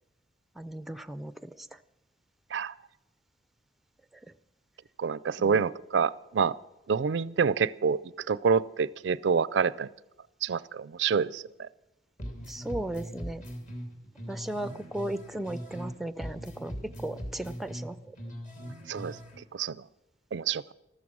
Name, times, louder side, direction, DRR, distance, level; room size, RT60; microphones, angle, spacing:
voice 1, 0.6-1.7 5.4-5.7 12.5-13.4 14.3-18.2, right 1 dB, ahead, 0.4 m, -36 dB
voice 2, 5.0-6.5 6.9-8.0 8.3-9.9 10.4-11.7 18.9-19.1 19.5-19.7 20.3-20.6, right 6 dB, 70° right, 0.4 m, -27 dB
sound 1, 12.2-15.9 16.2-19.4, equal, 40° left, 2.7 m, -40 dB
14.0 x 13.0 x 6.2 m
head